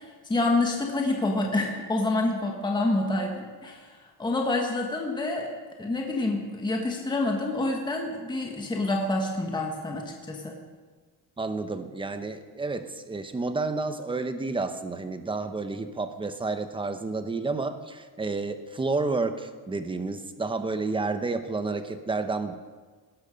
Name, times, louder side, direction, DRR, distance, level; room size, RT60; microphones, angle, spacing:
voice 1, 0.0-3.9 4.2-5.5 5.8-10.5, left 2 dB, 10° left, 1 dB, 1.4 m, -27 dB
voice 2, 11.4-22.5, right 3 dB, 10° right, 9 dB, 0.8 m, -30 dB
18.5 x 12.5 x 5.2 m, 1.5 s
cardioid pair, 170°, 43 cm